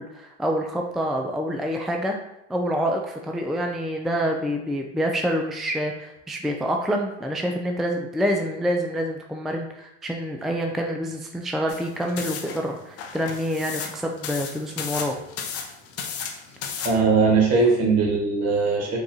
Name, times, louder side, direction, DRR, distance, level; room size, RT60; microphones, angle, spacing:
voice 1, 0.0-2.2 2.5-15.2, equal, ahead, 2 dB, 0.4 m, -27 dB
sound 1, 11.7-16.9, left 6 dB, 50° left, 0.7 m, -34 dB
voice 2, 16.8-19.0, right 4 dB, 55° right, -1 dB, 1.3 m, -20 dB
5.1 x 2.3 x 2.8 m, 0.83 s
hypercardioid pair, 75°, 30 cm